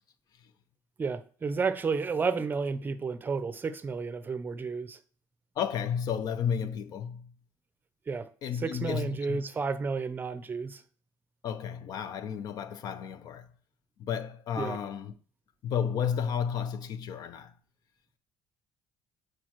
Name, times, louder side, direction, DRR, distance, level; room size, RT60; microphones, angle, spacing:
voice 1, 1.0-5.0 8.1-10.8 14.6-14.8, right 4 dB, 25° right, 0.6 m, -32 dB
voice 2, 5.6-7.3 8.4-9.4 11.4-13.5 14.0-15.1 15.6-17.5, left 7 dB, 60° left, 0.6 m, -32 dB
8.4 x 4.7 x 3.0 m
cardioid pair, 115°, 8 cm